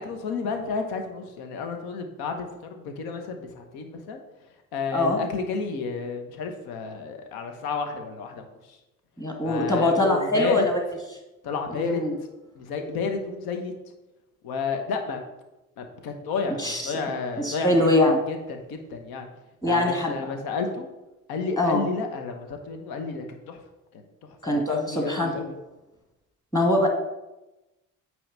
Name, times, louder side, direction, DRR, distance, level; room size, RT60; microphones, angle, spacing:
voice 1, 0.0-4.2 4.7-8.8 9.4-10.7 11.4-12.1 12.6-13.7 14.4-15.2 15.8-19.3 19.6-20.9 21.3-23.6 23.9-25.5, left 4 dB, 60° left, 5 dB, 1.1 m, -31 dB
voice 2, 9.2-10.8 11.7-12.1 16.6-16.9 17.4-18.2 19.6-20.2 21.6-21.8 24.4-25.3 26.5-26.9, left 1 dB, 10° left, 1 dB, 1.9 m, -23 dB
8.8 x 3.2 x 5.4 m, 1.0 s
figure-of-eight pair, 50°, 42 cm